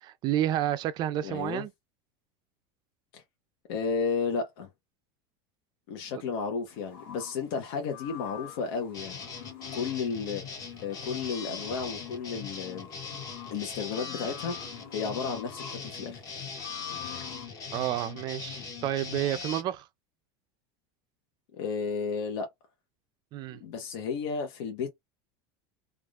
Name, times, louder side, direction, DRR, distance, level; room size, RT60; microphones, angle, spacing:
voice 1, 0.0-1.7 17.7-19.9 23.3-23.6, right 12 dB, 35° right, 0.4 m, -30 dB
voice 2, 1.2-1.6 3.1-3.2 3.7-4.7 5.9-9.2 9.7-10.5 10.8-12.9 13.5-16.3 21.5-22.5 23.5-24.9, left 5 dB, 70° left, 0.8 m, -33 dB
sound 1, 6.7-17.5, left 10 dB, 50° left, 1.8 m, -47 dB
sound 2, 8.9-19.6, left 5 dB, 30° left, 0.9 m, -40 dB
3.4 x 2.4 x 2.4 m
supercardioid pair, 160°, 13 cm